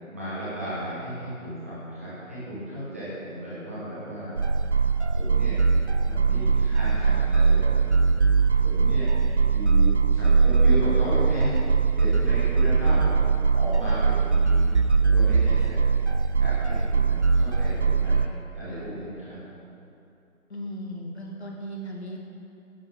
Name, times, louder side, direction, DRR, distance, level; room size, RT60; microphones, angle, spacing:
voice 1, 0.1-4.3 4.7-4.8 5.1-5.6 6.0-7.9 8.5-11.5 12.0-15.9 16.3-18.2 18.5-19.4, equal, 10° right, -12 dB, 1.5 m, -34 dB
sound 1, 4.4-18.3, right 5 dB, 55° right, 0.6 m, -21 dB
voice 2, 20.5-22.2, equal, 50° left, 0 dB, 2.2 m, -36 dB
17.0 x 11.0 x 3.8 m, 2.7 s
figure-of-eight pair, 170°, 42 cm